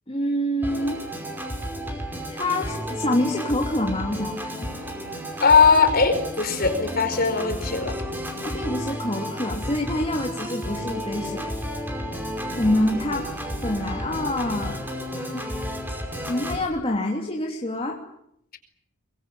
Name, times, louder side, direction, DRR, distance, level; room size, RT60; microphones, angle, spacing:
voice 1, 0.1-1.0 2.3-4.7 8.4-11.5 12.6-13.3 13.6-14.8 15.3-15.4 16.3-18.0, left 1 dB, 25° left, 0 dB, 2.9 m, -26 dB
Organ, 0.6-16.6, equal, 10° right, 5.4 m, -32 dB
voice 2, 5.4-8.0, left 5 dB, 45° left, 8 dB, 4.7 m, -19 dB
24.0 x 23.0 x 9.1 m, 0.73 s
head